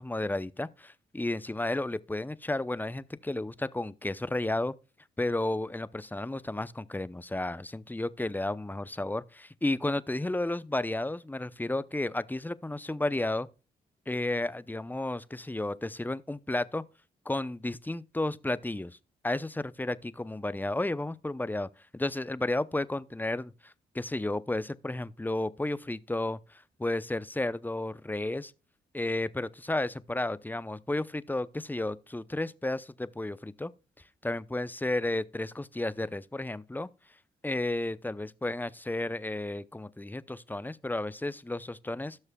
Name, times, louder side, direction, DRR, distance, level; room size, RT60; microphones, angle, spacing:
voice 1, 0.0-4.7 5.2-13.5 14.1-16.8 17.3-19.0 19.2-28.5 28.9-33.7 34.2-36.9 37.4-42.2, left 2 dB, 10° left, 0.6 m, -32 dB
17.0 x 6.5 x 2.3 m
supercardioid pair, 50°, 18 cm